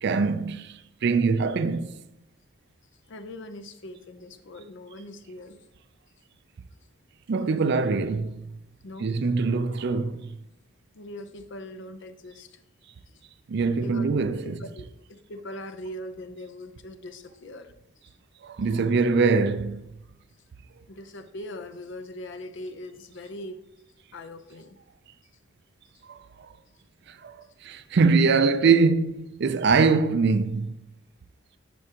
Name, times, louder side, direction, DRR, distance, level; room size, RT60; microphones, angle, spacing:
voice 1, 0.0-0.7 1.0-1.9 7.3-8.5 9.0-10.4 13.5-14.6 18.4-19.8 26.1-26.5 27.2-27.3 27.6-30.8, right 4 dB, 60° right, 0.4 m, -23 dB
voice 2, 3.1-5.6 8.8-9.1 10.9-12.6 13.8-14.9 15.3-17.7 20.9-23.6 24.1-24.7, left 1 dB, 70° left, 0.6 m, -41 dB
11.5 x 4.8 x 2.9 m
head